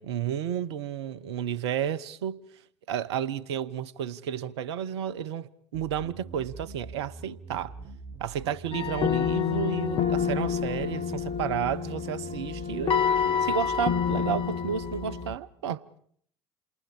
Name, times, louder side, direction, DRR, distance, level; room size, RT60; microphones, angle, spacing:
voice 1, 0.0-2.5 2.9-7.8 8.2-15.8, right 9 dB, 70° right, 1.0 m, -32 dB
sound 1, 5.7-15.3, right 4 dB, 45° right, 2.3 m, -44 dB
sound 2, 8.7-15.3, left 8 dB, 35° left, 1.8 m, -28 dB
29.0 x 27.5 x 5.0 m
figure-of-eight pair, 60°, 15 cm